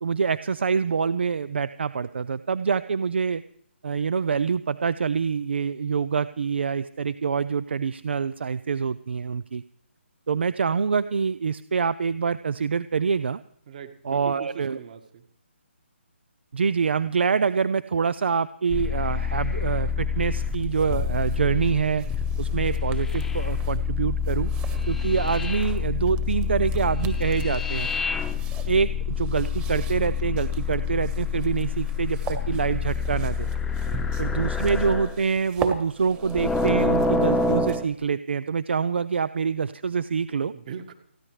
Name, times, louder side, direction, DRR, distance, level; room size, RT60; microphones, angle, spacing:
voice 1, 0.0-3.4 3.8-9.6 10.3-13.4 14.0-14.8 16.5-22.1 22.4-24.5 24.9-27.9 28.7-33.5 34.2-40.5, right 6 dB, 60° right, 16 dB, 0.6 m, -25 dB
voice 2, 13.7-15.2 33.8-34.1 40.5-40.9, right 7 dB, 40° right, 8 dB, 1.8 m, -40 dB
sound 1, 18.7-35.2 36.2-37.8, left 5 dB, 5° left, 1.0 m, -27 dB
sound 2, 20.3-38.1, right 5 dB, 15° right, 1.5 m, -41 dB
30.0 x 11.0 x 3.3 m, 0.67 s
figure-of-eight pair, 145°, 7 cm